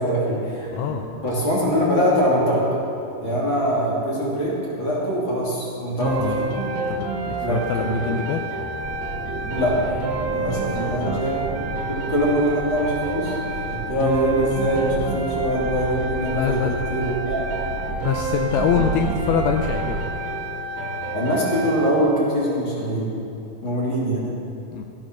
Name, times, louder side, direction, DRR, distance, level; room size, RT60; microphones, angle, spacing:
voice 1, 0.0-1.0 1.2-2.6 3.2-6.5 7.4-8.1 9.5-10.0 10.3-13.4 13.7-17.5 21.1-23.1 23.6-24.2, equal, 30° left, -5 dB, 3.1 m, -23 dB
voice 2, 0.7-1.1 6.2-6.4 6.9-8.4 10.4-11.2 16.3-16.7 18.0-20.0 24.7-24.9, left 8 dB, 85° left, 4 dB, 2.2 m, -25 dB
sound 1, 6.0-22.0, right 2 dB, 80° right, 3.2 m, -29 dB
sound 2, 8.8-20.1, right 4 dB, 60° right, 1.8 m, -33 dB
14.0 x 9.9 x 6.2 m, 2.7 s
omnidirectional pair, 5.0 m